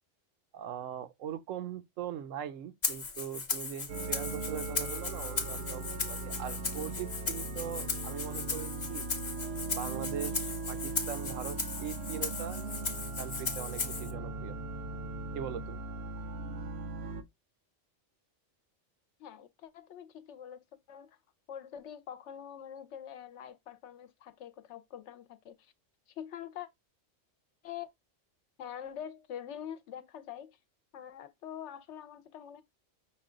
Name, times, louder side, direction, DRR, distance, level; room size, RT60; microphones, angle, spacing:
voice 1, 0.5-9.1 9.8-12.8 13.2-14.6 15.3-15.8, right 9 dB, 85° right, 1.0 m, -41 dB
Rattle (instrument), 2.8-14.1, left 4 dB, 40° left, 0.9 m, -37 dB
sound 1, 3.9-17.2, right 3 dB, 65° right, 0.8 m, -39 dB
voice 2, 19.2-21.2 21.5-25.7 26.1-26.7 27.6-27.9 28.6-30.6 30.9-32.6, left 9 dB, 70° left, 0.8 m, -45 dB
5.9 x 2.2 x 3.7 m
omnidirectional pair, 1.3 m